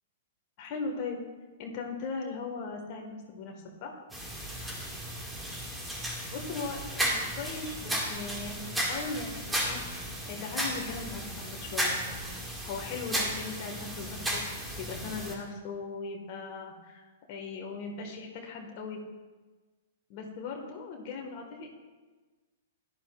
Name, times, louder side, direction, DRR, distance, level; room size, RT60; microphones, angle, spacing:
voice 1, 0.6-1.2 1.6-4.0 6.0-9.8 10.3-12.0 12.6-17.0 17.3-19.0 20.1-21.7, left 4 dB, 40° left, 1 dB, 1.8 m, -39 dB
sound 1, 4.1-15.3, equal, 5° right, 2.1 m, -34 dB
17.0 x 11.5 x 2.5 m, 1.3 s
figure-of-eight pair, 105°, 0 cm